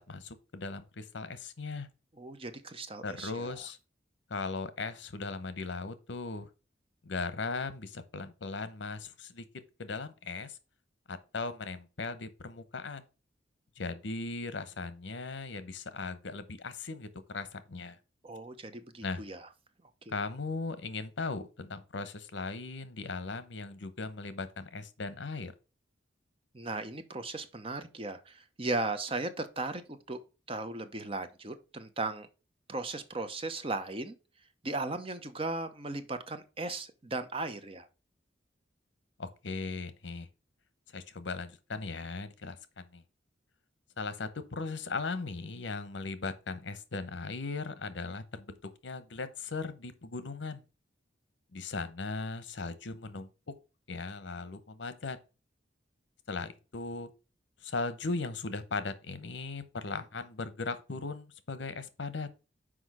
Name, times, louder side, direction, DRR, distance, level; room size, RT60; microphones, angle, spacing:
voice 1, 0.1-1.9 3.0-3.8 4.3-6.5 7.0-9.5 9.8-10.6 11.1-13.0 13.8-18.0 19.0-19.2 20.1-25.5 39.2-40.3 40.9-43.0 44.0-50.6 51.5-53.5 53.9-55.2 56.3-57.1 57.6-62.3, left 3 dB, 75° left, 0.9 m, -38 dB
voice 2, 2.2-3.5 18.2-19.5 20.1-20.2 26.5-30.2 30.5-32.3 32.7-34.2 34.6-37.9, right 2 dB, 30° right, 0.8 m, -37 dB
6.3 x 4.9 x 4.8 m
head